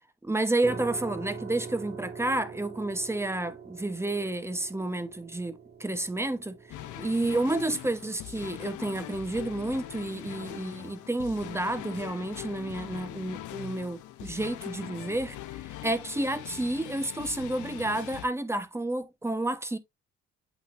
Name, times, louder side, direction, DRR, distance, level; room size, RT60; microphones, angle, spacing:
voice 1, 0.2-15.4 15.8-19.8, right 2 dB, 10° right, 0.9 m, -30 dB
sound 1, 0.6-13.5, right 5 dB, 35° right, 1.7 m, -46 dB
sound 2, 6.7-18.3, left 14 dB, 75° left, 0.8 m, -42 dB
8.2 x 5.2 x 2.5 m
cardioid pair, 90°, 30 cm